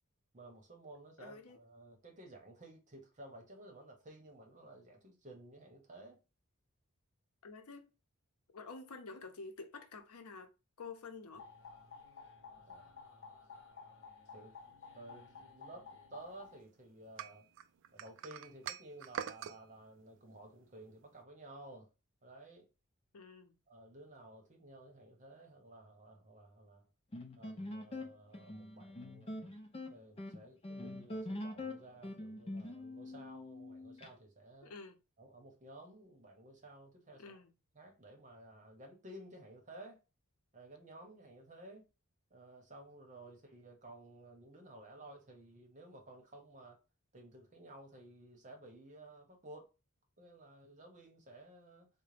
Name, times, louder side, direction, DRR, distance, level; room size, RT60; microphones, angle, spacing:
voice 1, 0.3-6.2 12.7-12.9 14.3-14.5 14.9-17.4 17.9-21.9 22.2-22.7 23.7-26.9 27.4-29.5 29.9-34.7 35.2-37.4 37.7-40.0 40.5-41.8 42.3-46.8 47.1-49.7 50.2-51.9, right 1 dB, 35° right, 0.9 m, -54 dB
voice 2, 1.2-1.6 7.4-7.9 8.5-10.5 10.8-11.5 23.1-23.6 34.6-35.0 37.2-37.5, left 4 dB, 90° left, 0.6 m, -49 dB
sound 1, 11.3-16.6, left 5 dB, 55° left, 0.8 m, -54 dB
sound 2, 17.2-19.6, right 9 dB, 60° right, 0.3 m, -43 dB
sound 3, 27.1-34.1, left 1 dB, 25° left, 0.5 m, -44 dB
3.8 x 2.1 x 3.3 m
head